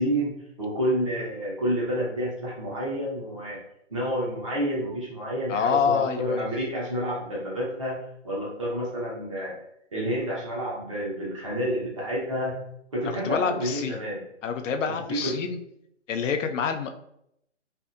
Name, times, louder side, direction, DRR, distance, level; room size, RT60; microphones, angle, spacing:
voice 1, 0.0-3.6 3.9-9.6 9.9-12.6 12.9-14.2 15.1-15.4, equal, 25° right, -5 dB, 0.7 m, -29 dB
voice 2, 5.5-6.4 13.2-14.0 14.4-15.6 16.1-16.9, left 6 dB, 85° left, 7 dB, 0.5 m, -26 dB
2.6 x 2.5 x 2.4 m, 0.77 s
hypercardioid pair, 170°, 36 cm